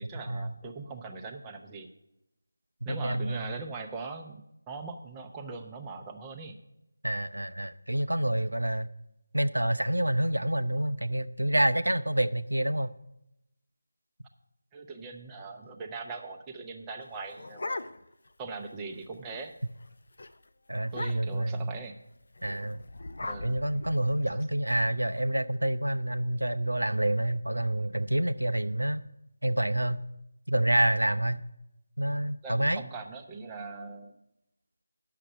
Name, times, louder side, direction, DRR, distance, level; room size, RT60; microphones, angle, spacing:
voice 1, 0.0-1.9 2.8-6.5 14.7-17.8 18.4-19.6 20.9-22.0 23.2-23.6 24.3-24.4 32.4-34.1, right 4 dB, 10° right, 1 dB, 0.7 m, -41 dB
voice 2, 2.9-3.5 7.0-8.9 9.3-12.9 20.7-21.8 22.4-22.8 23.4-29.0 29.4-30.0 30.5-31.4 32.0-32.8, right 1 dB, 75° right, 12 dB, 0.5 m, -28 dB
sound 1, 17.0-18.3 18.7-18.8 19.0-19.3 19.7-19.9 20.2-20.3 20.9-21.5 22.4-24.4, left 2 dB, 50° left, 0.5 m, -39 dB
9.9 x 6.7 x 7.1 m, 0.85 s
figure-of-eight pair, 160°, 0 cm